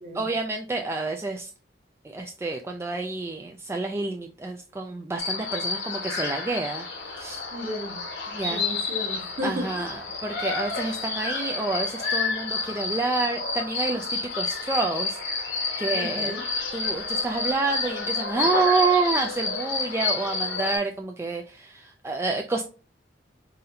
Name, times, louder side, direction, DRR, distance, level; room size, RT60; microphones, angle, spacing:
voice 1, 0.1-1.5 2.0-7.4 8.3-8.6 9.4-15.2 15.8-16.3 16.7-22.6, right 3 dB, 15° right, 2 dB, 0.3 m, -28 dB
sound 1, 5.2-20.8, left 3 dB, 85° left, 1.3 m, -30 dB
voice 2, 7.5-8.0 8.5-9.9 15.9-16.4, left 1 dB, 40° right, 2 dB, 1.1 m, -34 dB
4.1 x 3.8 x 2.7 m, 0.37 s
head